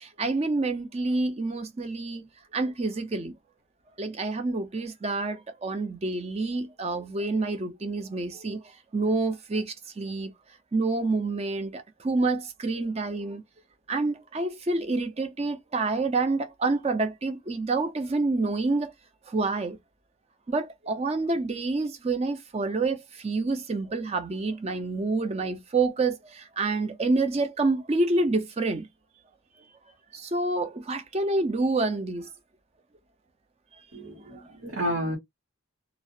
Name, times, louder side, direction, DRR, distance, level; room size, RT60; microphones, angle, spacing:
voice 1, 0.0-3.3 4.0-10.3 10.7-13.4 13.9-18.9 19.3-19.8 20.5-28.9 30.1-32.3 34.3-34.4, right 3 dB, 30° right, 0.4 m, -28 dB
voice 2, 33.9-35.2, equal, 55° right, 0.9 m, -31 dB
2.4 x 2.0 x 2.5 m
head